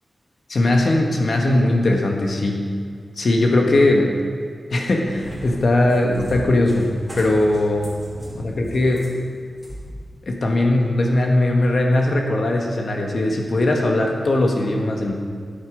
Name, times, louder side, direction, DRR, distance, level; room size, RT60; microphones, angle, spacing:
voice 1, 0.5-2.7 3.2-4.2 4.7-7.9 8.4-9.0 10.3-15.1, left 1 dB, 65° left, 1 dB, 1.4 m, -19 dB
Cat, 4.9-9.9, equal, 5° right, 3.4 m, -36 dB
17.0 x 8.1 x 5.2 m, 2.1 s
wide cardioid pair, 90°, 0 cm